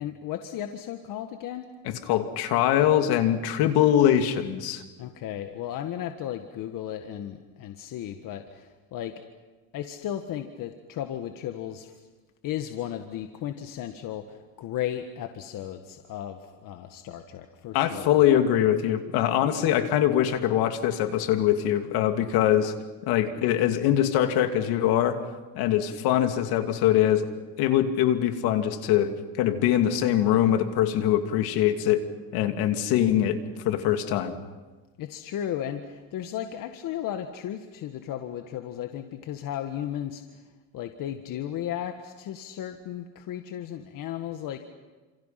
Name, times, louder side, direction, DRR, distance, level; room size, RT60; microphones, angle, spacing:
voice 1, 0.0-1.7 5.0-9.1 9.7-11.9 12.4-18.3 35.0-40.2 40.7-44.6, left 11 dB, 60° left, 6 dB, 1.8 m, -35 dB
voice 2, 1.8-4.8 17.7-22.7 23.1-25.2 25.5-27.3 27.6-32.0 32.3-33.4 33.6-34.3, left 11 dB, 75° left, 7 dB, 2.8 m, -23 dB
30.0 x 27.5 x 5.9 m, 1.3 s
cardioid pair, 125°, 37 cm